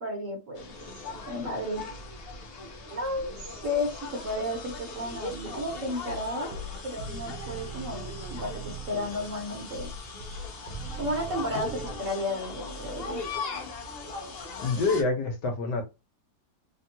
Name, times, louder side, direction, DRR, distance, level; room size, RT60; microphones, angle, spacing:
voice 1, 0.0-0.9 1.3-1.8 2.9-6.5 6.8-9.9 11.0-13.2, left 1 dB, 50° right, 1 dB, 1.2 m, -33 dB
sound 1, 0.6-15.0, left 3 dB, 55° left, 0.6 m, -39 dB
sound 2, 5.5-11.9, right 3 dB, 85° right, 1.2 m, -41 dB
voice 2, 14.6-15.8, left 3 dB, 80° left, 5 dB, 1.4 m, -26 dB
3.4 x 2.2 x 2.7 m, 0.25 s
omnidirectional pair, 1.9 m